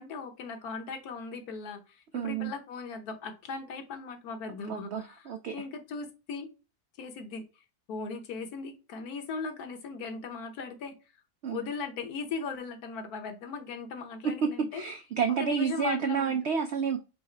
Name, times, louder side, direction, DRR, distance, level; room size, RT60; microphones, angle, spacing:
voice 1, 0.0-6.5 7.0-7.4 7.9-10.9 11.5-14.8 15.4-16.4, left 4 dB, 75° left, 6 dB, 1.4 m, -38 dB
voice 2, 2.1-2.5 4.7-5.5 11.4-11.6 14.2-17.0, right 6 dB, 75° right, 7 dB, 0.6 m, -29 dB
4.8 x 2.0 x 4.3 m, 0.30 s
omnidirectional pair, 1.7 m